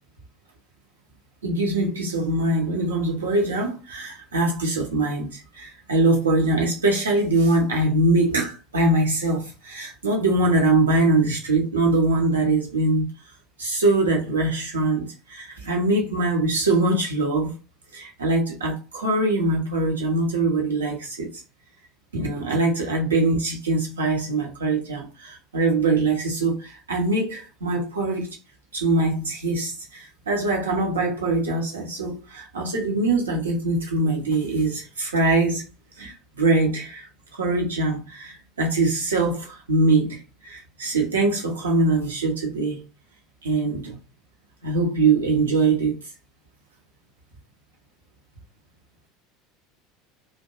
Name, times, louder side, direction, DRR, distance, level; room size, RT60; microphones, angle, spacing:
voice 1, 1.4-13.1 13.6-17.5 17.9-21.3 22.1-28.4 28.7-35.6 36.0-37.1 37.3-42.8 43.4-44.0 44.6-46.0, right 2 dB, 75° right, 0.8 m, -23 dB
2.5 x 2.1 x 2.8 m
figure-of-eight pair, 75°, 0 cm